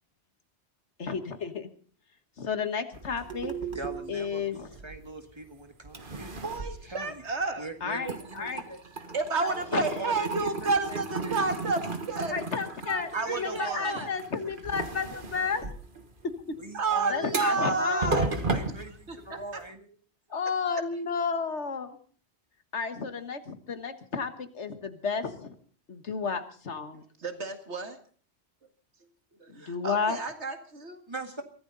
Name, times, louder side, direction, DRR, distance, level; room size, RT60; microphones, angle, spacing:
voice 1, 1.0-1.7 2.4-3.5 4.1-4.7 7.8-8.6 9.4-10.1 12.3-15.7 17.1-18.4 20.3-22.0 22.7-25.5 25.9-27.0 29.5-30.2, left 5 dB, 90° left, 9 dB, 1.8 m, -32 dB
sound 1, 2.9-5.4 5.8-7.7 8.0-19.6, right 3 dB, 50° right, 1.8 m, -36 dB
voice 2, 3.7-6.4 6.9-7.2 7.6-8.8 9.7-11.4 12.8-14.1 16.6-17.5 17.9-19.9 20.3-20.8 31.1-31.4, right 3 dB, 25° right, 5 dB, 2.0 m, -41 dB
voice 3, 6.4-7.7 9.1-12.3 13.1-13.9 16.7-18.3 19.1-19.4 27.2-28.0 29.4-31.0, right 3 dB, 80° right, 7 dB, 2.2 m, -30 dB
23.0 x 15.0 x 4.0 m, 0.42 s
omnidirectional pair, 1.1 m